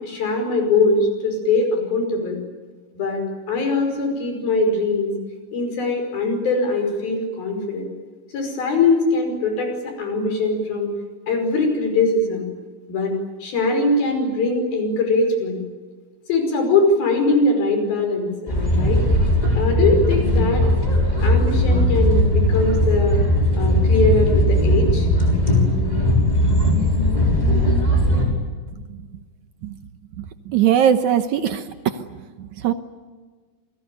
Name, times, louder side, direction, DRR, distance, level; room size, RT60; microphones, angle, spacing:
voice 1, 0.0-2.4 2.9-5.1 5.5-7.9 8.3-10.9 11.3-12.5 12.9-13.1 13.4-15.6 16.3-19.0 19.6-20.7 21.2-23.2 23.6-25.1, left 3 dB, 75° left, 5 dB, 7.2 m, -21 dB
sound 1, 18.5-28.2, left 1 dB, 10° left, 6.0 m, -18 dB
voice 2, 30.2-32.0 32.4-32.7, right 9 dB, 65° right, 9 dB, 2.1 m, -20 dB
28.5 x 21.5 x 9.4 m, 1.4 s
omnidirectional pair, 4.3 m